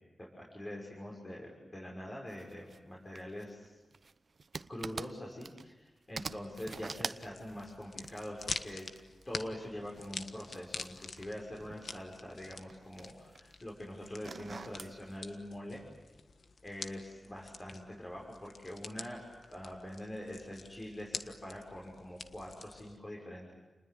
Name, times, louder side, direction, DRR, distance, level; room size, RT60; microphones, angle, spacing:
voice 1, 0.3-3.8 4.7-8.9 9.3-15.8 16.6-19.2 19.5-23.5, left 1 dB, 30° left, -3 dB, 6.3 m, -44 dB
sound 1, 2.3-2.8 3.1-5.9 6.2-9.3 9.9-12.0 12.3-13.5 14.1-15.0, right 4 dB, 55° right, 0.9 m, -45 dB
sound 2, 6.2-23.0, left 4 dB, 70° left, 1.5 m, -47 dB
29.5 x 20.5 x 9.6 m, 1.2 s
wide cardioid pair, 80°, 0 cm